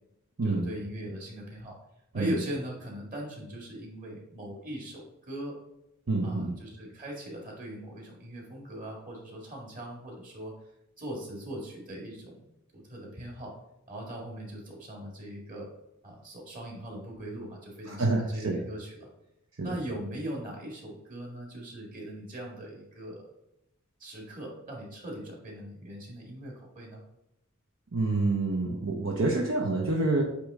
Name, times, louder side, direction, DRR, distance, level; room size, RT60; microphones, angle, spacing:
voice 1, 0.4-1.7 2.1-5.6 6.2-10.5 11.0-12.4 12.7-13.5 13.9-15.7 16.0-19.1 19.6-23.3 24.0-27.0, right 1 dB, 40° right, -2 dB, 1.9 m, -40 dB
voice 2, 6.1-6.6 17.9-18.6 19.6-19.7 27.9-30.2, right 2 dB, 65° right, -1 dB, 0.8 m, -27 dB
8.4 x 3.2 x 3.6 m, 0.87 s
head